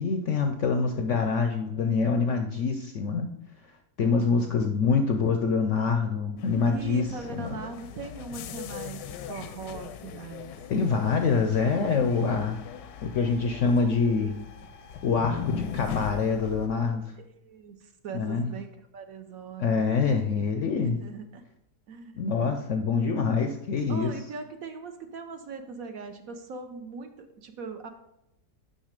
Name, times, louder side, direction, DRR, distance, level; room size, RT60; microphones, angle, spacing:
voice 1, 0.0-3.3 4.0-7.6 10.7-12.6 13.0-14.4 15.0-17.1 18.1-18.5 19.6-21.0 22.2-24.1, left 5 dB, 65° left, 5 dB, 0.7 m, -25 dB
sound 1, 6.4-16.7, left 7 dB, 85° left, 1.2 m, -39 dB
voice 2, 6.6-10.5 12.1-12.5 17.2-18.7 18.9-19.9 20.8-21.4 21.9-22.1 23.9-27.9, right 5 dB, 65° right, 6 dB, 1.0 m, -40 dB
6.4 x 6.0 x 5.1 m, 0.84 s
omnidirectional pair, 1.8 m